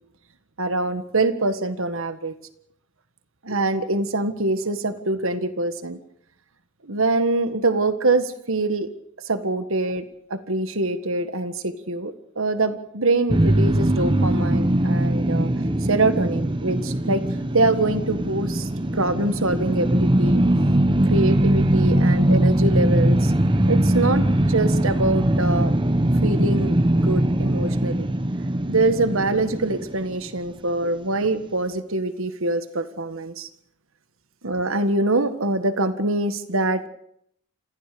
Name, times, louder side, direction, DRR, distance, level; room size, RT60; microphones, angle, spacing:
voice 1, 0.6-2.3 3.4-6.0 6.8-8.9 9.3-10.0 10.3-15.5 15.9-17.2 17.5-20.4 21.1-23.3 23.7-25.7 26.2-28.1 28.7-33.5 34.4-36.9, right 2 dB, 60° right, 11 dB, 1.6 m, -24 dB
sound 1, 13.3-30.5, right 1 dB, 20° right, 1.1 m, -21 dB
27.0 x 15.5 x 6.8 m, 0.71 s
head